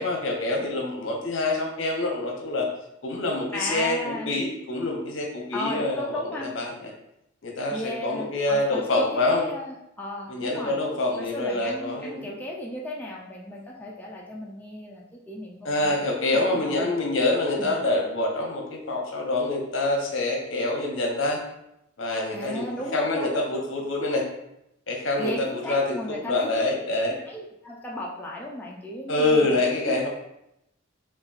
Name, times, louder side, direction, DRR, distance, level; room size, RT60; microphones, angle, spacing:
voice 1, 0.0-2.7 3.0-6.2 6.6-6.9 7.4-9.4 10.3-12.3 15.6-21.4 22.0-24.3 24.9-27.1 29.1-30.1, left 2 dB, 70° left, 0 dB, 0.8 m, -26 dB
voice 2, 3.5-4.4 5.5-6.5 7.7-10.7 11.2-16.9 17.6-17.8 22.3-23.4 25.2-26.8 27.1-29.6, left 1 dB, 10° left, -3 dB, 0.4 m, -35 dB
5.7 x 2.4 x 2.5 m, 0.83 s
head